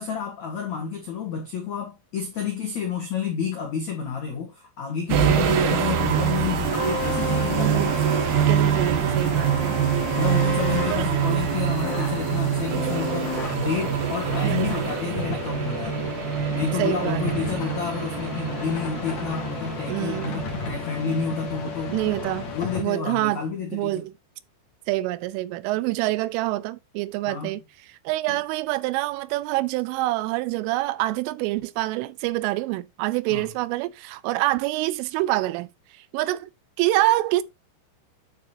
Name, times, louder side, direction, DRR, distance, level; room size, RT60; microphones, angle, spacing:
voice 1, 0.0-8.2 10.1-16.0 16.5-22.0 22.2-24.0 27.2-27.5 28.3-28.4 33.3-33.5, left 6 dB, 75° left, 1.6 m, -30 dB
sound 1, 5.1-22.0 22.2-22.4, right 9 dB, 70° right, 2.6 m, -25 dB
sound 2, 6.6-22.8, left 5 dB, 50° left, 2.2 m, -33 dB
voice 2, 7.6-7.9 8.5-9.8 10.9-11.1 14.4-14.8 16.8-17.5 19.9-20.4 21.9-22.5 22.8-23.4 23.7-24.1 24.9-27.6 28.1-35.7 35.9-36.5 36.8-37.4, right 17 dB, 85° right, 3.0 m, -26 dB
9.5 x 6.2 x 2.8 m
omnidirectional pair, 5.9 m